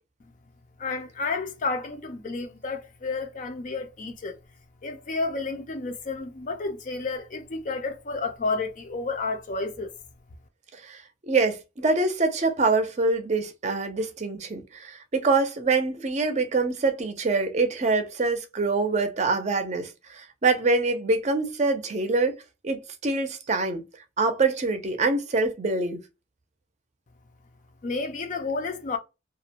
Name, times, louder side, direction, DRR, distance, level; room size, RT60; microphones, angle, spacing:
voice 1, 0.8-4.4 4.8-9.9 27.8-29.0, left 3 dB, 45° left, 0.4 m, -31 dB
voice 2, 11.3-22.4 22.6-23.8 24.2-26.0, right 3 dB, 40° right, 0.5 m, -25 dB
2.4 x 2.1 x 2.8 m
head